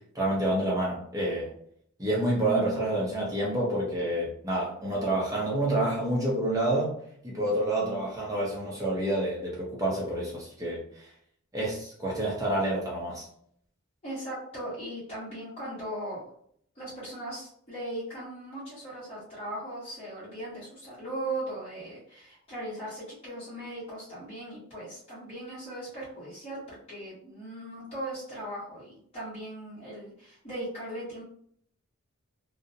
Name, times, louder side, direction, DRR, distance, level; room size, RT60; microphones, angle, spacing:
voice 1, 0.1-1.5 2.0-7.0 7.2-11.1 11.5-13.3, right 1 dB, 15° right, -4 dB, 0.6 m, -28 dB
voice 2, 14.0-16.3 16.7-31.2, right 1 dB, 25° left, -10 dB, 1.0 m, -38 dB
2.4 x 2.0 x 2.7 m, 0.63 s
head